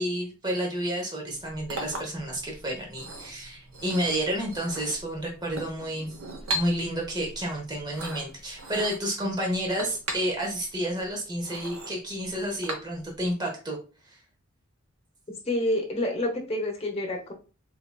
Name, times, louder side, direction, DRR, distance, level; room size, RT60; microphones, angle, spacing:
voice 1, 0.0-6.1 6.5-13.8, right 1 dB, 20° right, -1 dB, 0.8 m, -30 dB
Chink clink, 1.3-13.3, right 1 dB, 75° right, 0.8 m, -39 dB
voice 2, 15.5-17.3, left 1 dB, 30° left, 0 dB, 0.9 m, -28 dB
4.0 x 2.8 x 2.2 m, 0.34 s
head